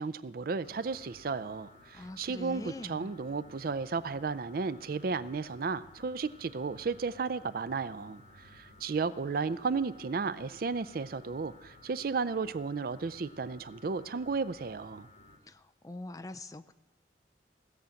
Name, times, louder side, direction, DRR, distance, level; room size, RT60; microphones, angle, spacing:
voice 1, 0.0-15.1, right 4 dB, 50° right, 15 dB, 0.4 m, -34 dB
sound 1, 0.6-15.4, left 1 dB, 80° left, 1.9 m, -56 dB
voice 2, 1.9-3.1 15.5-16.7, left 2 dB, 20° left, 12 dB, 0.4 m, -43 dB
16.0 x 7.1 x 7.7 m, 1.0 s
head